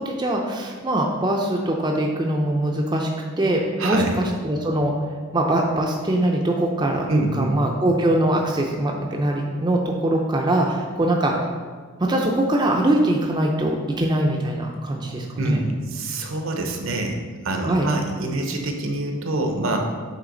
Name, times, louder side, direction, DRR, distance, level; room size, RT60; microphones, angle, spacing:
voice 1, 0.0-3.1 3.4-4.9 5.3-7.1 7.3-11.3 12.0-15.6 17.6-17.9, right 1 dB, 20° right, 0 dB, 0.4 m, -22 dB
voice 2, 3.8-4.2 7.1-7.6 15.4-19.8, right 2 dB, 70° right, 3 dB, 0.7 m, -25 dB
8.1 x 3.3 x 3.8 m, 1.5 s
head